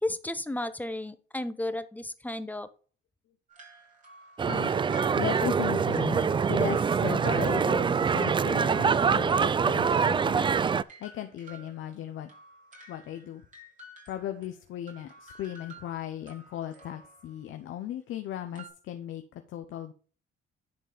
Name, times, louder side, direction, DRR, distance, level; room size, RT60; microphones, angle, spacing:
voice 1, 0.0-2.7, left 1 dB, 10° left, 12 dB, 0.9 m, -33 dB
sound 1, 3.5-9.4 9.7-14.5 14.9-17.4 18.5-18.7, right 2 dB, 40° right, 4.0 m, -50 dB
sound 2, 4.4-10.8, right 6 dB, 25° right, 0.3 m, -25 dB
voice 2, 4.5-10.5 11.0-12.3 12.9-13.4 14.1-19.9, left 11 dB, 80° left, 7 dB, 0.8 m, -37 dB
10.5 x 4.4 x 5.1 m, 0.40 s
cardioid pair, 90°, 20 cm